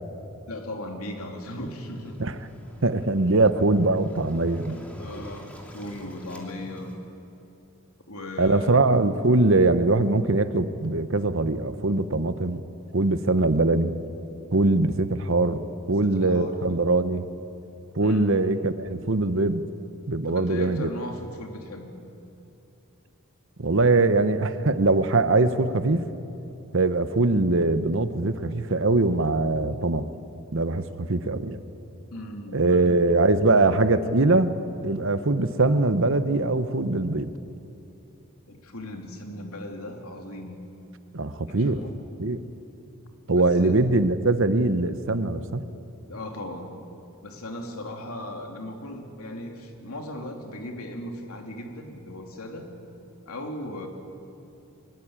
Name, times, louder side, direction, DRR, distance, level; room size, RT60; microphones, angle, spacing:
voice 1, 0.5-2.2 4.7-6.9 8.1-9.0 15.9-16.7 18.0-18.4 20.2-21.9 32.1-33.0 38.5-40.6 41.5-41.9 43.3-43.8 46.1-46.8 47.2-52.7 53.2-53.9, left 1 dB, 80° left, 3 dB, 3.0 m, -37 dB
Waves surf, 1.2-6.9, equal, 5° left, 2.7 m, -46 dB
voice 2, 2.8-4.8 8.4-12.6 12.9-13.9 14.5-17.2 17.9-19.6 20.1-20.9 23.6-26.0 26.7-30.1 30.5-31.6 32.5-34.5 34.8-37.3 41.1-41.8 42.2-42.4 43.3-45.6, right 2 dB, 60° right, 12 dB, 1.0 m, -22 dB
23.5 x 21.0 x 8.9 m, 2.8 s
head